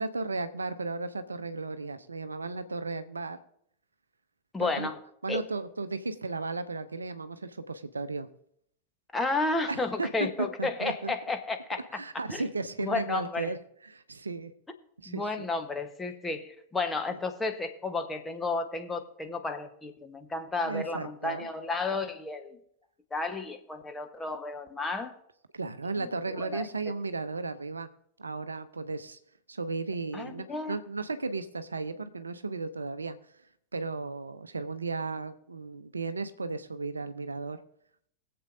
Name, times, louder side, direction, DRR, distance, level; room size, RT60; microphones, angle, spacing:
voice 1, 0.0-3.4 4.6-4.9 5.2-8.3 9.7-10.1 10.6-11.1 11.9-13.6 13.8-14.5 15.0-15.5 17.1-17.2 20.6-21.5 25.5-27.9 28.2-29.2 29.5-33.2 33.7-37.6, right 3 dB, 75° right, 11 dB, 0.6 m, -35 dB
voice 2, 4.5-5.0 5.3-5.4 9.1-12.0 12.3-12.4 12.8-13.5 15.1-22.6 23.1-25.2 26.0-26.1 26.4-26.7 30.1-30.8, left 3 dB, 10° left, 6 dB, 1.2 m, -32 dB
22.0 x 7.7 x 2.7 m, 0.70 s
figure-of-eight pair, 90°, 0 cm